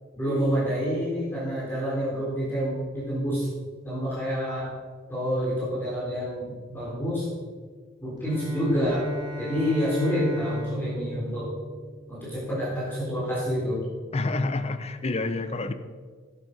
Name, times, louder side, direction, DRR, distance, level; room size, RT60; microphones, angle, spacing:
voice 1, 0.1-3.5 3.8-4.7 5.1-7.3 8.0-9.1 9.4-11.5 12.1-13.8, equal, 10° left, -8 dB, 3.9 m, -28 dB
Bowed string instrument, 8.1-12.6, equal, 20° right, 2.3 m, -36 dB
voice 2, 14.1-15.7, left 2 dB, 35° left, 10 dB, 0.7 m, -28 dB
11.0 x 9.1 x 5.2 m, 1.5 s
head